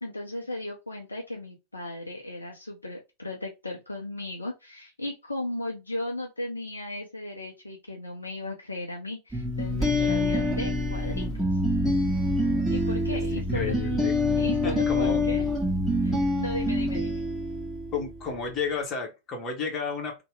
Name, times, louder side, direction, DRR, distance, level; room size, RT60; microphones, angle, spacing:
voice 1, 0.0-11.6 12.7-13.8 14.4-15.4 16.0-17.2, left 1 dB, 80° left, 0.5 m, -36 dB
sound 1, 9.3-18.0, left 1 dB, ahead, 1.3 m, -26 dB
voice 2, 13.5-14.1 14.6-15.2 17.9-20.2, left 5 dB, 25° left, 1.0 m, -32 dB
2.8 x 2.1 x 3.1 m
figure-of-eight pair, 90°, 0 cm